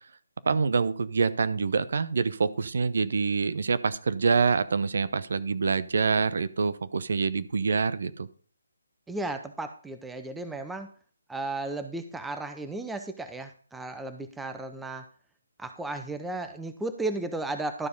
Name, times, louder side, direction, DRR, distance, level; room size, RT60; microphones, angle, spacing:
voice 1, 0.5-8.3, right 4 dB, 60° right, 14 dB, 0.7 m, -26 dB
voice 2, 9.1-10.9 11.3-15.1 15.6-17.9, right 2 dB, 5° right, 8 dB, 0.7 m, -34 dB
12.5 x 4.8 x 5.4 m, 0.42 s
figure-of-eight pair, 155°, 0 cm